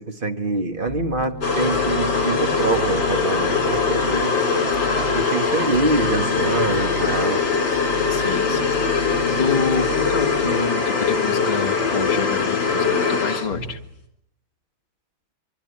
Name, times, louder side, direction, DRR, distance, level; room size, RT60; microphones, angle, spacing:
voice 1, 0.0-4.4 5.1-7.4, right 3 dB, 30° right, 6 dB, 1.2 m, -25 dB
sound 1, 0.9-10.5, left 1 dB, 45° right, 3.2 m, -33 dB
sound 2, 1.4-13.8, left 5 dB, 75° left, 4.4 m, -22 dB
voice 2, 8.1-8.8 9.4-13.8, left 5 dB, 20° left, 3 dB, 1.8 m, -28 dB
25.5 x 23.5 x 9.6 m, 0.76 s
omnidirectional pair, 2.1 m